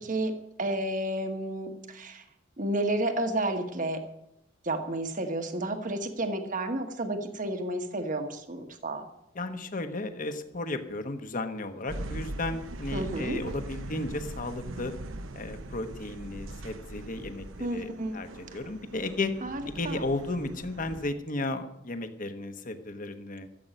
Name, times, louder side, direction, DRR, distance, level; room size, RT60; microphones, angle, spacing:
voice 1, 0.6-2.2 2.6-4.0 4.6-9.0 12.9-13.4 17.6-18.2 19.4-20.0, right 1 dB, 40° right, 6 dB, 1.3 m, -31 dB
voice 2, 9.3-14.9 15.3-19.3 19.7-23.5, left 2 dB, 40° left, 8 dB, 1.2 m, -34 dB
sound 1, 11.9-21.1, right 2 dB, 85° right, 0.9 m, -41 dB
14.0 x 7.9 x 9.0 m, 0.84 s
head